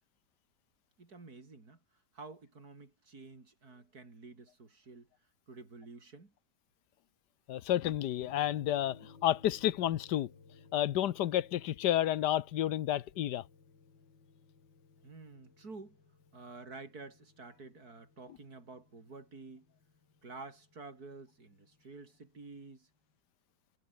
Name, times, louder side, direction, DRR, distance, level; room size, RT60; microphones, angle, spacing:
voice 1, 1.0-1.8 2.1-5.1 5.5-6.3 15.0-16.0 16.3-19.7 20.2-22.9, right 3 dB, 55° right, 4.3 m, -50 dB
voice 2, 7.5-10.3 10.7-13.4, left 12 dB, 70° left, 1.4 m, -30 dB
sound 1, 8.2-22.7, left 4 dB, 90° left, 3.9 m, -60 dB
omnidirectional pair, 1.9 m